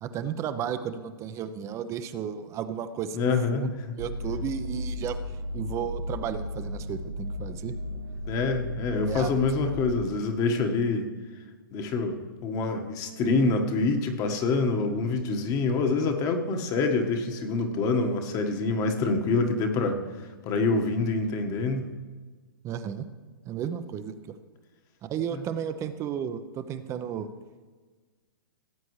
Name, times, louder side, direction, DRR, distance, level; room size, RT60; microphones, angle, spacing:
voice 1, 0.0-3.7 4.0-5.2 5.5-7.7 9.1-9.3 22.6-23.1 23.4-24.3 25.1-27.3, right 8 dB, 25° right, 11 dB, 0.7 m, -33 dB
voice 2, 3.1-3.9 8.3-11.1 11.7-12.2 12.4-20.0 20.4-21.9 25.3-25.4, left 3 dB, 30° left, 5 dB, 1.4 m, -26 dB
sound 1, 4.0-10.0, left 1 dB, 60° right, 2.1 m, -35 dB
17.5 x 8.3 x 3.2 m, 1.4 s
hypercardioid pair, 130°, 12 cm